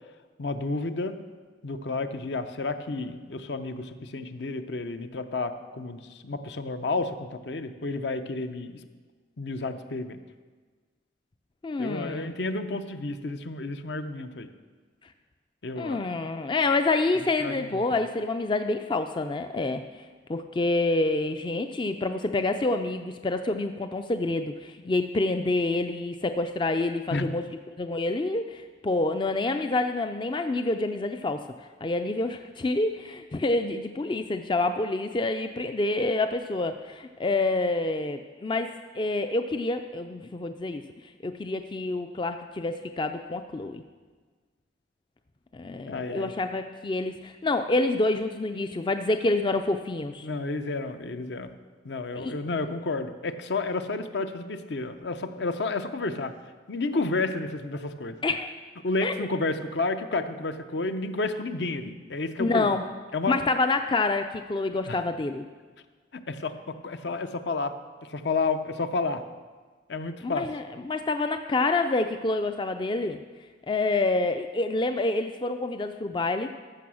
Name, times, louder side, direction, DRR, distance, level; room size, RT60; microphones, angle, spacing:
voice 1, 0.4-1.2 1.6-8.8 9.4-10.2 11.8-14.5 15.6-16.1 17.4-18.0 27.1-27.3 45.9-46.3 50.2-51.5 51.8-56.3 56.7-58.2 58.8-62.7 63.1-63.3 64.9-65.0 66.1-67.7 68.0-69.2 69.9-70.5, left 3 dB, 65° left, 9 dB, 0.7 m, -31 dB
voice 2, 11.6-12.3 15.8-19.8 20.3-31.4 31.8-38.7 38.9-43.8 45.5-50.3 52.2-52.3 58.2-58.5 59.0-59.2 62.4-62.8 63.3-65.4 70.2-73.2 73.7-76.5, left 2 dB, 25° left, 8 dB, 0.4 m, -27 dB
14.5 x 6.2 x 6.3 m, 1.4 s
head